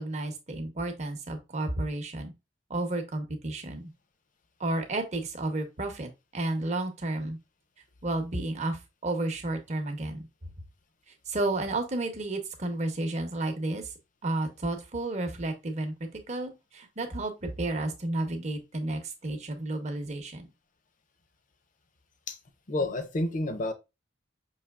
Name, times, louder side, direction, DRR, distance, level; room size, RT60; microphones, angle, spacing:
voice 1, 0.0-2.3 2.7-3.9 4.6-7.4 8.0-10.3 11.1-13.9 14.2-20.5, right 2 dB, 40° right, 0.8 m, -32 dB
voice 2, 22.7-23.7, left 2 dB, 45° left, 0.6 m, -29 dB
5.6 x 2.8 x 2.2 m
head